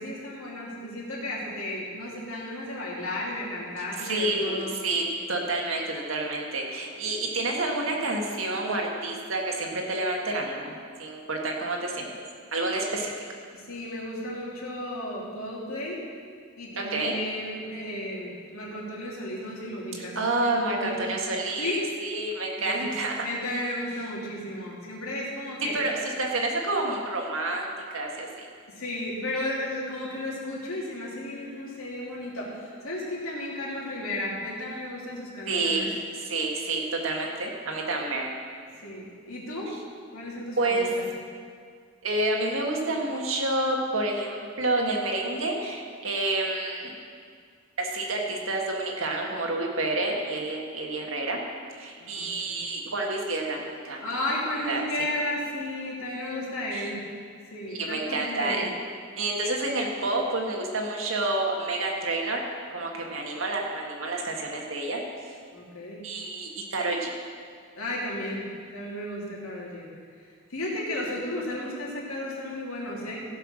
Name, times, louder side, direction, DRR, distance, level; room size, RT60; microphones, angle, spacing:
voice 1, 0.0-4.8 13.5-16.0 16.6-21.0 21.6-21.8 22.5-22.8 23.2-25.7 28.7-35.9 38.8-39.7 40.1-41.1 52.0-52.5 54.0-57.0 57.5-58.7 65.5-66.0 67.8-68.5 68.7-69.9 70.5-73.2, left 1 dB, 90° left, -4 dB, 2.9 m, -34 dB
voice 2, 4.0-5.0 5.3-10.7 11.0-12.1 12.5-13.1 16.9-17.2 20.2-23.3 25.7-28.5 35.5-35.9 36.2-38.3 40.6-40.9 42.0-46.9 47.8-51.4 51.8-54.0 54.5-54.8 56.7-56.8 57.7-58.7 59.2-62.4 62.7-65.0 66.0-67.1, right 2 dB, 75° right, 0 dB, 1.8 m, -29 dB
15.5 x 5.8 x 6.2 m, 2.1 s
head